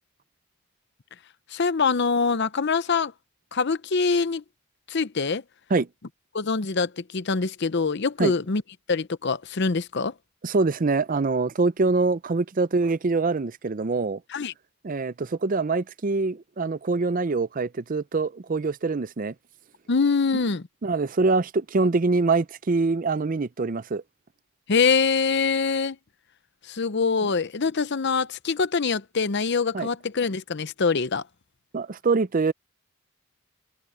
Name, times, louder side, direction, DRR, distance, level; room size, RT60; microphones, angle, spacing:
voice 1, 1.5-3.1 3.5-4.4 4.9-5.4 6.3-8.6 8.9-10.1 14.3-14.5 19.9-20.6 24.7-26.0 26.7-31.2, left 4 dB, 55° left, 0.7 m, -24 dB
voice 2, 10.4-14.2 14.8-19.3 20.8-24.0 27.2-27.3 29.7-29.9 31.7-32.5, right 3 dB, 40° right, 0.5 m, -24 dB
head